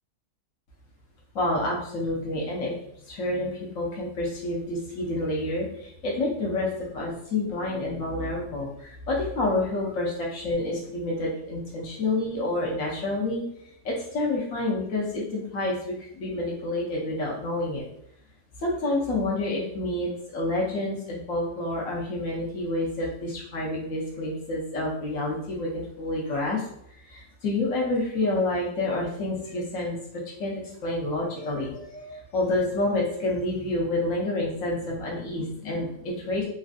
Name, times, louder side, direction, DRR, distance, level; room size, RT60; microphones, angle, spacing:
voice 1, 1.3-2.7 3.1-13.4 13.8-17.8 18.6-26.6 27.0-30.0 30.3-36.4, left 2 dB, 75° left, -3 dB, 1.1 m, -28 dB
3.0 x 2.5 x 2.4 m, 0.73 s
omnidirectional pair, 1.5 m